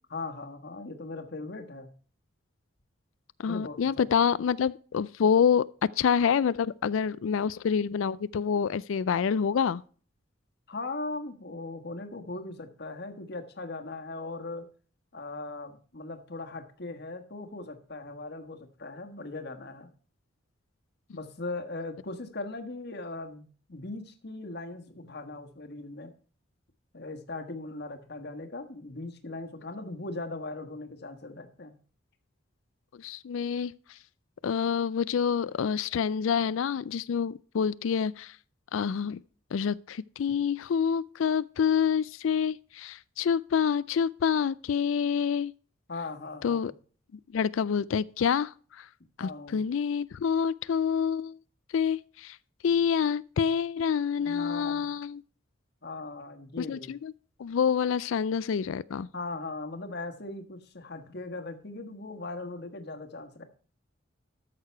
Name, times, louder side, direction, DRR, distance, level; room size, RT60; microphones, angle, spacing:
voice 1, 0.1-1.9 3.4-4.1 10.7-14.7 15.1-19.9 21.1-26.1 26.9-31.8 45.9-46.7 49.2-49.6 54.2-54.9 55.8-56.9 59.1-63.4, left 2 dB, 55° left, 1.5 m, -39 dB
voice 2, 3.4-5.6 6.0-9.8 32.9-34.0 34.4-38.4 38.7-39.2 39.5-45.5 46.4-46.7 47.3-48.9 49.2-51.4 51.7-52.4 52.6-55.2 56.6-57.1 57.4-59.1, left 7 dB, 80° left, 0.4 m, -27 dB
13.0 x 6.7 x 4.5 m
head